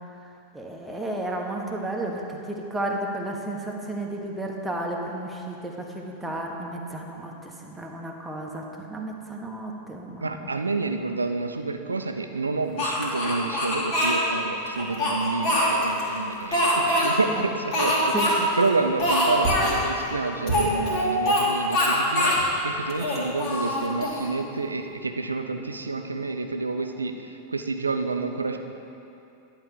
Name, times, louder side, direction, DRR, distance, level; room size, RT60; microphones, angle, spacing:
voice 1, 0.5-2.2 2.5-10.5 18.1-18.3, right 1 dB, 5° right, -1 dB, 1.2 m, -33 dB
voice 2, 10.2-28.6, right 3 dB, 80° right, 6 dB, 0.6 m, -29 dB
Speech, 12.8-14.2 14.7-16.0 16.5-17.1 17.7-18.3 18.6-18.7 19.0-19.8 20.5-21.4 21.7-22.4 22.9-24.3, left 1 dB, 45° left, 2.3 m, -23 dB
11.0 x 4.6 x 6.9 m, 2.8 s
figure-of-eight pair, 90°, 0 cm